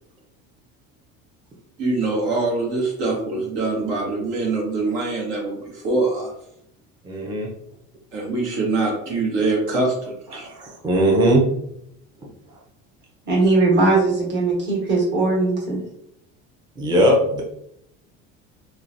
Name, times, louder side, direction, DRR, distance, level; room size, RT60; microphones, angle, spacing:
voice 1, 1.8-6.3 8.1-10.5, right 3 dB, 80° right, -2 dB, 1.2 m, -24 dB
voice 2, 7.0-7.5 10.3-11.4 16.8-17.4, right 1 dB, 15° right, -2 dB, 0.5 m, -19 dB
voice 3, 13.3-15.8, right 3 dB, 40° right, -2 dB, 1.1 m, -19 dB
3.1 x 2.3 x 2.5 m, 0.75 s
cardioid pair, 125°, 29 cm